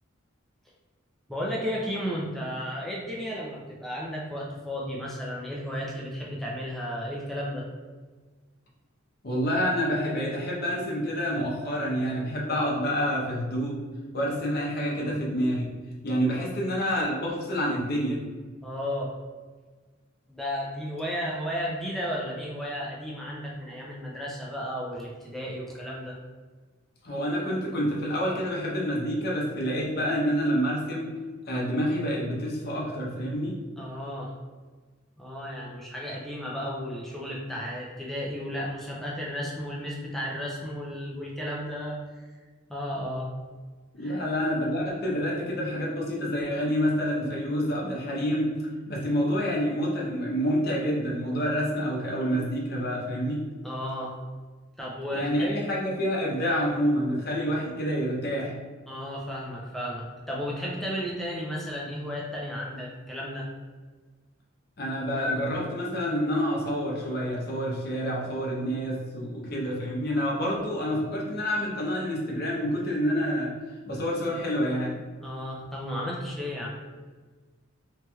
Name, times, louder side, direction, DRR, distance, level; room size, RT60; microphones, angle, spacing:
voice 1, 1.3-7.6 16.4-16.5 18.6-19.1 20.3-26.2 33.8-34.3 35.2-42.0 42.7-43.3 44.0-44.2 53.6-54.1 54.8-55.5 58.9-63.5 75.2-76.8, equal, ahead, -4 dB, 0.4 m, -33 dB
voice 2, 9.2-13.8 14.1-15.7 16.0-18.2 27.0-31.1 31.5-33.6 43.9-48.5 48.9-53.4 55.1-58.5 64.8-73.5 73.9-75.0, equal, 50° left, -3 dB, 0.6 m, -28 dB
3.1 x 2.9 x 2.3 m, 1.4 s
head